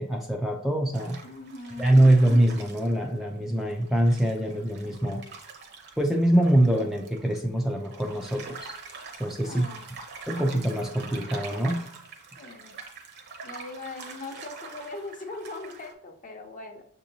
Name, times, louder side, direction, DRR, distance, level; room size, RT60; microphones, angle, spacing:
voice 1, 0.0-1.2 1.8-5.2 6.0-8.7 9.2-9.7 10.3-11.8, right 1 dB, ahead, 0 dB, 0.4 m, -23 dB
sound 1, 0.9-15.9, right 4 dB, 50° right, 0.8 m, -45 dB
voice 2, 1.2-2.1 9.4-9.8 12.4-12.8 13.4-16.9, left 2 dB, 35° left, 4 dB, 0.6 m, -40 dB
6.7 x 2.7 x 2.7 m, 0.65 s
head